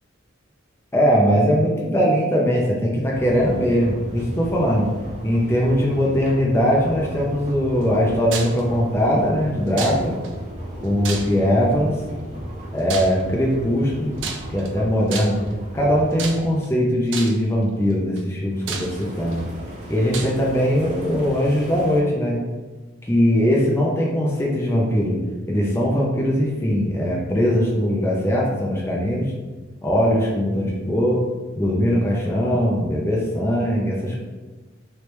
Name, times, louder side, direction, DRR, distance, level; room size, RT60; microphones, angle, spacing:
voice 1, 0.9-4.9 5.2-10.1 10.8-12.0 12.7-14.2 14.5-15.4 15.7-19.4 19.9-22.4 23.1-25.2 25.5-29.3 29.8-31.2 31.6-34.2, equal, 15° left, -4 dB, 0.5 m, -20 dB
sound 1, 3.1-16.7 18.5-22.0, right 1 dB, 35° right, 0.7 m, -35 dB
sound 2, 8.3-8.6 9.8-10.3 11.0-11.6 12.9-13.2 14.2-14.7 15.1-15.5 16.2-16.7 17.1-17.5 18.2-18.3 18.7-19.3 20.1-20.4, right 5 dB, 65° right, 0.4 m, -31 dB
3.2 x 3.1 x 3.0 m, 1.2 s
head